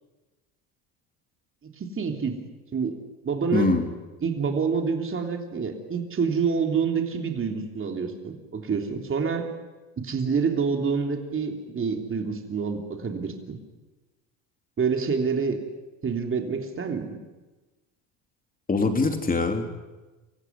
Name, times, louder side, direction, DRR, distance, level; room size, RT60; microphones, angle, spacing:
voice 1, 1.8-2.4 2.7-3.0 3.2-3.8 4.2-9.5 10.0-13.6 14.8-15.6 16.0-17.2, right 5 dB, 30° right, 4 dB, 3.3 m, -27 dB
voice 2, 3.5-3.9 18.7-19.8, left 3 dB, 20° left, 5 dB, 3.2 m, -23 dB
26.0 x 15.0 x 9.5 m, 1.2 s
supercardioid pair, 100°, 42 cm